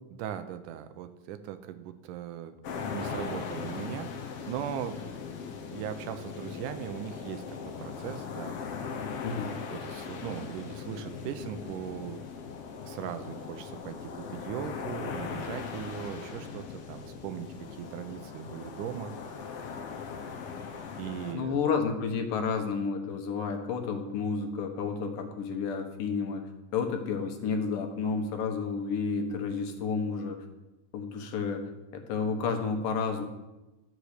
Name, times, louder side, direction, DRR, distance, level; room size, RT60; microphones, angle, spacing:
voice 1, 0.1-2.6 2.9-5.0 5.7-8.6 9.7-12.2 12.8-19.1 21.0-21.6, right 10 dB, 80° right, 10 dB, 2.2 m, -39 dB
sound 1, 2.6-21.3, left 6 dB, 60° left, 1.6 m, -39 dB
voice 2, 21.3-30.4 30.9-31.7 31.9-33.3, left 5 dB, 90° left, 4 dB, 2.9 m, -31 dB
12.0 x 6.5 x 6.5 m, 1.1 s
omnidirectional pair, 3.7 m